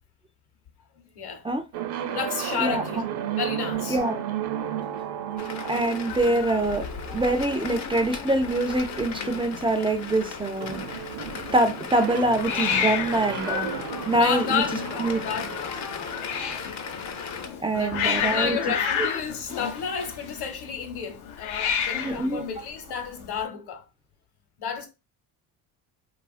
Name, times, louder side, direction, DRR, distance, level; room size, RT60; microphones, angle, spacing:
voice 1, 1.1-1.5 2.1-3.0 3.3-4.0 14.2-15.8 17.7-23.8 24.6-24.9, left 7 dB, 55° left, 0.9 m, -31 dB
sound 1, 1.7-17.5, right 9 dB, 60° right, 0.6 m, -35 dB
voice 2, 2.6-3.0 3.9-4.2 5.7-6.8 7.1-10.8 11.5-13.7 14.1-14.6 15.0-15.2 17.6-18.6 21.9-22.5, right 2 dB, 15° right, 0.3 m, -24 dB
sound 2, 5.4-17.5, left 6 dB, 40° left, 0.5 m, -37 dB
Hiss, 6.1-23.4, left 8 dB, 80° left, 0.7 m, -33 dB
2.8 x 2.4 x 2.4 m
cardioid pair, 85°, 48 cm